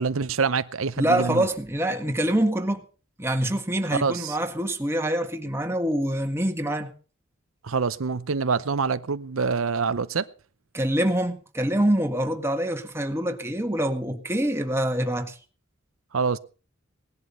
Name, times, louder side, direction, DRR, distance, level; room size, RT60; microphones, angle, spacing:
voice 1, 0.0-1.4 4.0-4.4 7.6-10.3 16.1-16.4, right 5 dB, 90° right, 0.7 m, -26 dB
voice 2, 1.0-2.8 3.2-6.9 10.7-15.4, right 1 dB, 10° right, 1.7 m, -25 dB
19.0 x 11.0 x 5.6 m
head